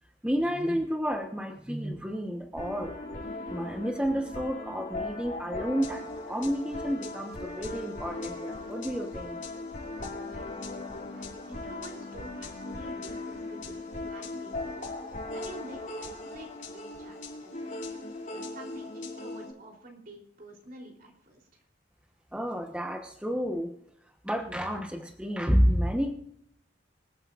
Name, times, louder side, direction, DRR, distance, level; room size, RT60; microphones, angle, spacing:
voice 1, 0.2-2.9 3.5-9.4 22.3-23.7 24.2-26.1, equal, 5° right, 3 dB, 1.1 m, -30 dB
sound 1, 2.6-19.5, left 2 dB, 45° left, 5.3 m, -38 dB
voice 2, 10.2-10.8 11.1-14.9 15.3-17.7 18.3-21.6, right 1 dB, 50° right, 0 dB, 3.5 m, -49 dB
26.5 x 8.9 x 2.5 m, 0.72 s
head